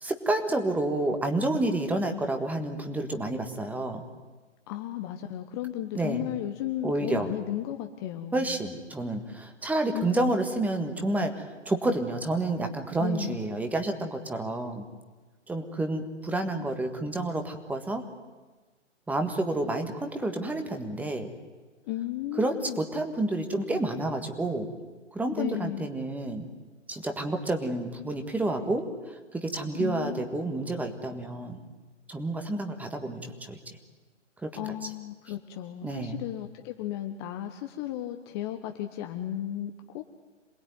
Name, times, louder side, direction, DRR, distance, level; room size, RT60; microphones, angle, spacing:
voice 1, 0.0-4.0 6.0-6.2 6.8-7.3 8.3-14.8 15.5-18.0 19.1-21.3 22.4-24.7 25.1-26.5 26.9-31.6 32.1-33.6 34.4-34.6 35.8-36.2, right 2 dB, 5° right, 6 dB, 1.7 m, -29 dB
voice 2, 4.7-8.6 9.9-10.4 13.0-13.4 21.8-22.8 25.3-25.9 29.7-30.4 34.6-40.0, left 13 dB, 20° left, 6 dB, 1.1 m, -34 dB
27.0 x 20.0 x 9.5 m, 1.3 s
figure-of-eight pair, 135°, 37 cm